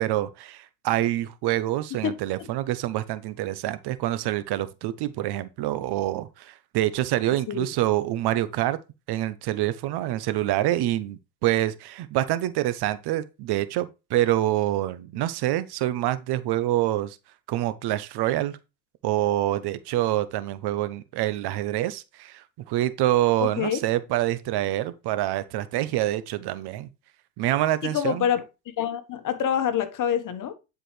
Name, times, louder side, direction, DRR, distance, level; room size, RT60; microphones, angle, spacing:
voice 1, 0.0-8.8 9.1-17.2 17.5-18.6 19.0-26.9 27.4-28.3, right 14 dB, 55° right, 0.9 m, -26 dB
voice 2, 23.4-23.8 27.8-28.4 28.8-30.5, left 8 dB, 40° left, 1.3 m, -26 dB
10.0 x 5.0 x 3.3 m
supercardioid pair, 90°, 47 cm